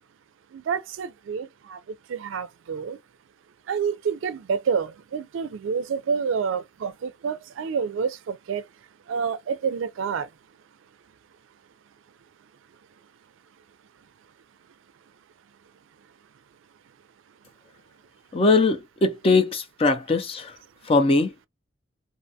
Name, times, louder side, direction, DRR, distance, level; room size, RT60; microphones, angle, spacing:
voice 1, 0.5-1.8 2.1-3.0 3.7-8.6 9.1-10.3, right 6 dB, 75° right, 0.3 m, -28 dB
voice 2, 18.3-20.5 20.9-21.3, left 3 dB, 30° left, 0.4 m, -21 dB
2.6 x 2.2 x 2.6 m
head